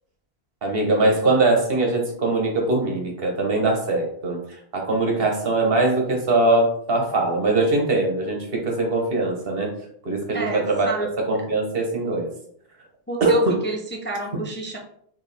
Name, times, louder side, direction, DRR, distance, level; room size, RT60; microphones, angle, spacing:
voice 1, 0.6-4.4 4.7-9.7 10.0-10.9 11.3-12.3 13.2-13.6, right 2 dB, 65° right, 1 dB, 1.3 m, -21 dB
voice 2, 10.3-11.1 13.1-14.8, right 2 dB, 15° left, -1 dB, 0.5 m, -30 dB
4.7 x 3.3 x 3.4 m, 0.66 s
omnidirectional pair, 1.1 m